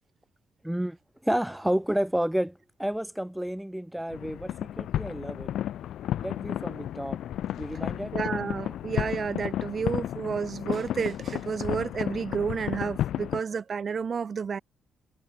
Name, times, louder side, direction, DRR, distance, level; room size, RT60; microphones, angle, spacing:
voice 1, 0.6-1.0 1.2-5.5 6.2-7.2 7.6-8.1, equal, 5° right, 1.6 m, -30 dB
sound 1, 4.1-13.4, left 11 dB, 75° left, 2.3 m, -32 dB
voice 2, 8.1-14.6, right 6 dB, 45° right, 3.6 m, -31 dB
cardioid pair, 90°, 0 cm